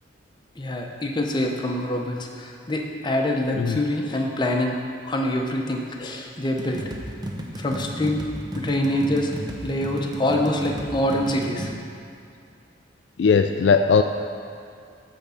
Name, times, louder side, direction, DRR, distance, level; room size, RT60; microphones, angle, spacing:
voice 1, 0.6-4.8 5.0-6.8 7.6-8.3 8.5-9.3 9.6-11.7, left 1 dB, 25° left, 0 dB, 0.8 m, -25 dB
sound 1, 6.6-11.7, equal, 25° right, 0.7 m, -34 dB
voice 2, 13.2-14.0, left 5 dB, 65° left, 6 dB, 0.3 m, -18 dB
9.9 x 3.6 x 6.9 m, 2.4 s
head